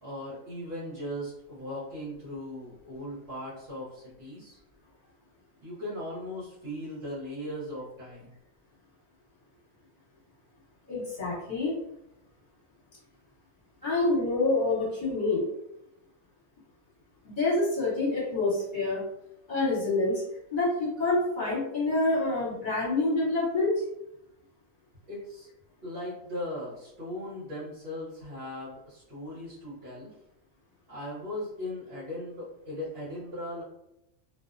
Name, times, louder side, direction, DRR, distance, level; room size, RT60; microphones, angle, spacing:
voice 1, 0.0-4.6 5.6-8.3 25.1-25.5 25.8-30.2 30.9-33.6, left 1 dB, 50° right, -9 dB, 0.9 m, -38 dB
voice 2, 10.9-11.8 13.8-15.4 17.2-19.0 19.5-20.2 20.5-23.8, left 2 dB, 40° left, -8 dB, 1.2 m, -27 dB
2.4 x 2.1 x 2.4 m, 0.83 s
omnidirectional pair, 1.4 m